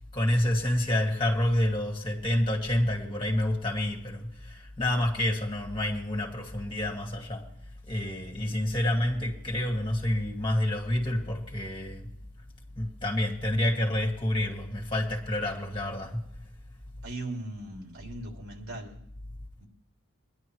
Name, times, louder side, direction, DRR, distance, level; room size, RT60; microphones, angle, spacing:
voice 1, 0.1-7.5 7.9-12.1 12.8-16.2, left 1 dB, 25° left, 2.2 m, -28 dB
voice 2, 17.0-19.0 19.6-19.7, right 1 dB, 75° right, 2.8 m, -38 dB
21.5 x 11.0 x 3.1 m
head